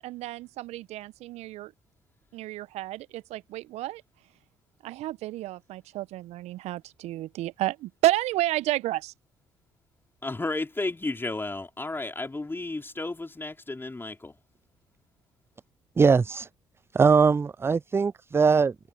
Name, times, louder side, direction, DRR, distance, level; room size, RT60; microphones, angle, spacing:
voice 1, 0.0-1.7 2.3-4.0 4.8-9.1, right 16 dB, 65° right, 1.3 m, -31 dB
voice 2, 10.2-14.3, left 2 dB, 20° left, 4.4 m, -33 dB
voice 3, 16.0-16.5 16.9-18.7, right 5 dB, 20° right, 0.3 m, -21 dB
figure-of-eight pair, 50°, 12 cm